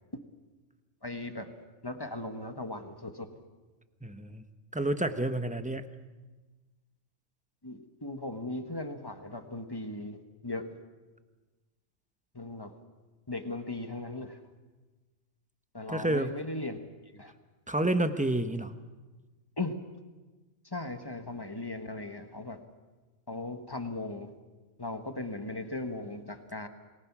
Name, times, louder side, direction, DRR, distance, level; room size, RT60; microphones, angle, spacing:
voice 1, 1.0-3.4 7.6-10.7 12.3-12.7 13.3-14.4 15.7-16.8 17.0-17.3 19.6-19.7 20.6-22.6 23.3-24.3 24.8-26.7, left 2 dB, 15° left, 7 dB, 1.4 m, -38 dB
voice 2, 4.0-4.4 4.7-5.8 15.9-16.3 17.7-18.7, right 1 dB, 5° right, 9 dB, 0.8 m, -29 dB
28.5 x 19.5 x 6.1 m, 1.2 s
omnidirectional pair, 1.4 m